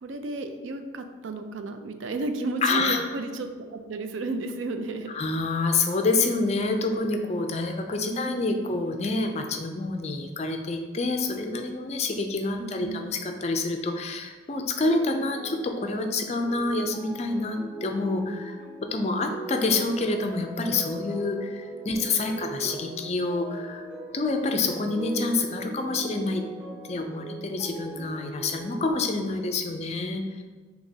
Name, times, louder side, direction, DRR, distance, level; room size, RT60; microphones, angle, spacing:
voice 1, 0.0-5.1 8.1-8.7 12.6-13.1, right 2 dB, 75° right, 7 dB, 0.4 m, -33 dB
voice 2, 2.6-3.0 5.1-18.6 18.9-23.9 24.1-26.4 26.9-30.2, left 3 dB, 35° left, 5 dB, 0.4 m, -27 dB
sound 1, 14.8-28.9, right 2 dB, 10° right, 1.2 m, -39 dB
6.5 x 2.9 x 2.7 m, 1.4 s
head